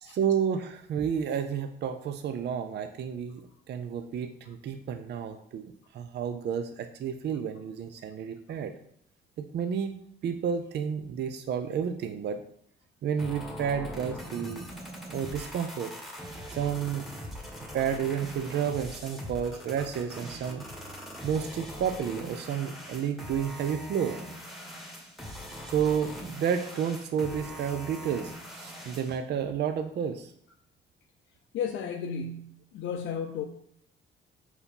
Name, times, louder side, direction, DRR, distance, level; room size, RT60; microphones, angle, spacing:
voice 1, 0.0-8.7 9.4-12.4 13.0-14.6 15.1-15.9 16.5-17.1 17.7-20.6 21.2-24.2 25.7-30.3, right 8 dB, 60° right, 8 dB, 0.5 m, -31 dB
sound 1, 13.2-29.2, equal, ahead, 1.4 m, -42 dB
voice 2, 31.5-33.4, left 6 dB, 80° left, 3 dB, 0.5 m, -34 dB
4.7 x 4.1 x 5.3 m, 0.68 s
cardioid pair, 90°, 20 cm